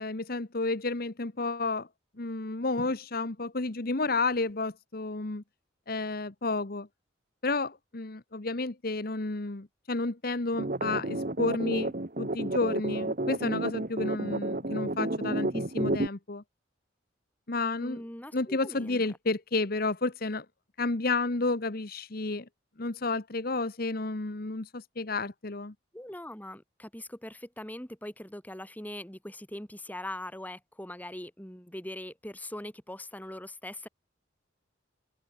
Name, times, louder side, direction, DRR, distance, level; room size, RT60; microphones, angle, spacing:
voice 1, 0.0-1.9 2.2-5.4 5.9-6.9 7.4-11.9 12.2-16.4 17.5-18.0 18.3-20.4 20.8-22.5 22.8-25.7, left 3 dB, 50° left, 1.2 m, -31 dB
sound 1, 10.5-16.1, right 2 dB, 45° right, 1.4 m, -31 dB
voice 2, 17.8-19.0 25.9-33.9, left 1 dB, 10° left, 1.9 m, -41 dB
head